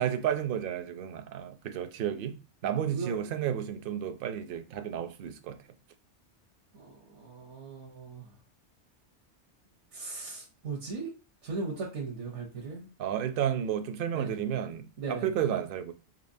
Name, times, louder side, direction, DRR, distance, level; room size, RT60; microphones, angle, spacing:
voice 1, 0.0-2.3 2.6-5.6 13.0-15.9, right 9 dB, 60° right, 0.6 m, -32 dB
voice 2, 2.9-3.2 6.7-8.3 9.9-11.1 11.4-12.9 14.1-14.3 15.0-15.3, right 4 dB, 85° right, 1.1 m, -38 dB
4.3 x 2.9 x 2.6 m
omnidirectional pair, 1.2 m